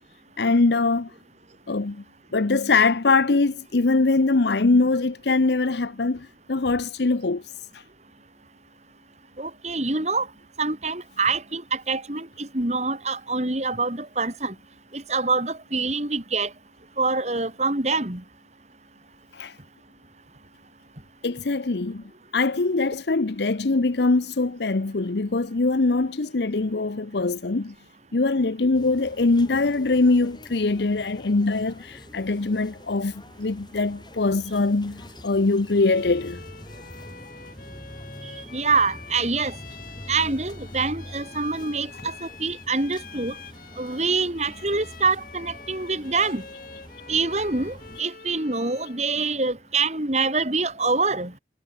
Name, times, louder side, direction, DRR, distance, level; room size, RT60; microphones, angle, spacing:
voice 1, 0.4-1.1 1.7-2.0 2.3-7.4 19.3-19.5 21.2-22.0 22.3-27.7 28.1-36.4, left 3 dB, 70° left, 0.8 m, -22 dB
voice 2, 9.4-10.3 10.6-14.5 14.9-16.5 17.0-18.2 38.5-39.5 40.1-42.1 42.4-43.3 43.8-46.4 47.1-51.3, right 3 dB, 40° right, 2.6 m, -25 dB
sound 1, 28.7-48.0, equal, 25° left, 5.4 m, -45 dB
Bowed string instrument, 35.7-49.1, left 5 dB, 50° left, 7.5 m, -46 dB
head